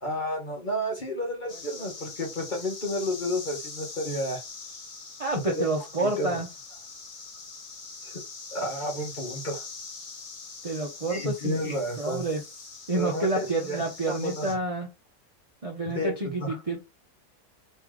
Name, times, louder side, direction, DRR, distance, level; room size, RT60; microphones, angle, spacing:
voice 1, 0.0-4.4 5.6-5.7 6.2-6.4 8.0-8.2 8.5-9.6 11.1-12.2 12.9-14.5 15.9-16.1 16.4-16.6, equal, 35° left, 1.1 m, -31 dB
sound 1, 1.5-14.6, left 4 dB, 50° left, 1.5 m, -43 dB
voice 2, 5.2-6.5 10.6-12.4 12.9-14.9 15.6-16.8, right 2 dB, 35° right, 0.5 m, -29 dB
3.2 x 3.2 x 3.6 m
omnidirectional pair, 1.8 m